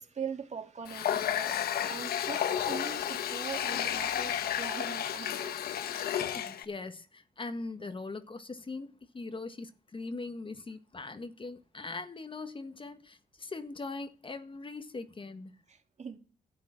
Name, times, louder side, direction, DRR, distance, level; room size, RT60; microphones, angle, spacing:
voice 1, 0.0-5.6 15.7-16.2, right 6 dB, 45° right, 2.5 m, -42 dB
Water tap faucet, 0.9-6.6, left 10 dB, 75° left, 1.0 m, -32 dB
voice 2, 5.9-15.5, left 3 dB, 35° left, 1.5 m, -41 dB
12.0 x 8.4 x 6.3 m
supercardioid pair, 60°, 16 cm